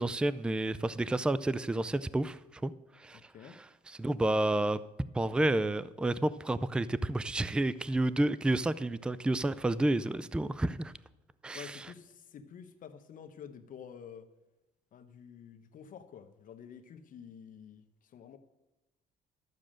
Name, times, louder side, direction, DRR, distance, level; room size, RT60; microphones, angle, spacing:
voice 1, 0.0-4.8 5.1-10.9 11.4-11.8, right 1 dB, 5° right, 17 dB, 0.4 m, -30 dB
voice 2, 3.1-3.6 11.5-14.2 14.9-18.4, left 7 dB, 50° left, 8 dB, 1.0 m, -49 dB
12.0 x 6.5 x 7.5 m, 1.0 s
cardioid pair, 110°, 17 cm